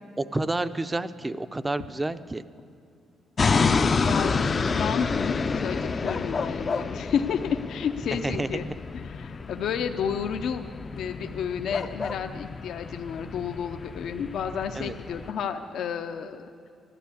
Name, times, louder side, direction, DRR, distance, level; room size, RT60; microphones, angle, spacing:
voice 1, 0.2-2.4 8.2-8.7 14.7-14.9, right 2 dB, 15° right, 13 dB, 0.5 m, -29 dB
sound 1, 3.4-15.3, left 4 dB, 35° left, 0.4 m, -29 dB
voice 2, 4.0-8.7 8.9-10.6 10.9-16.5, left 7 dB, 75° left, 6 dB, 0.6 m, -31 dB
12.5 x 12.0 x 8.3 m, 2.5 s
cardioid pair, 115°, 0 cm